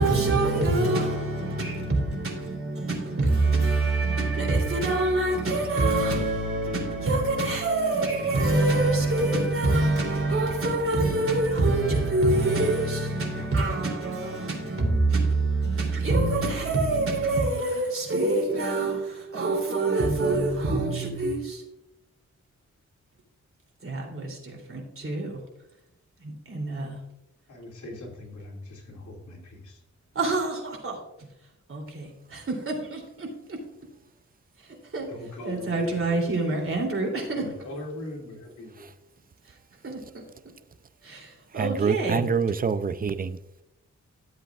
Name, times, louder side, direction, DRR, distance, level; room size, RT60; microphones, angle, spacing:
voice 1, 0.0-21.6 23.8-25.4 26.2-27.0 30.1-31.3 31.7-33.6 34.9-35.1 35.4-37.4 39.8-40.2 41.0-42.2, right 2 dB, 45° right, 3.2 m, -25 dB
voice 2, 27.5-29.8 35.0-36.8 37.3-38.9, left 2 dB, 85° left, 2.8 m, -39 dB
voice 3, 41.5-43.6, right 6 dB, 30° right, 0.5 m, -26 dB
13.5 x 7.8 x 2.5 m
cardioid pair, 85°, 30 cm